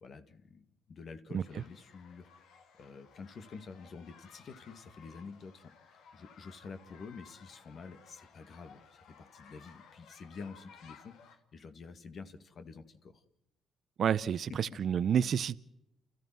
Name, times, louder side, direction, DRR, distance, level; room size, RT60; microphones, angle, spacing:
voice 1, 0.0-13.2, left 4 dB, 55° left, 2.2 m, -49 dB
sound 1, 1.4-11.4, left 6 dB, 85° left, 2.7 m, -58 dB
voice 2, 14.0-15.6, right 8 dB, 60° right, 0.7 m, -29 dB
30.0 x 14.5 x 7.6 m
cardioid pair, 90°, 0 cm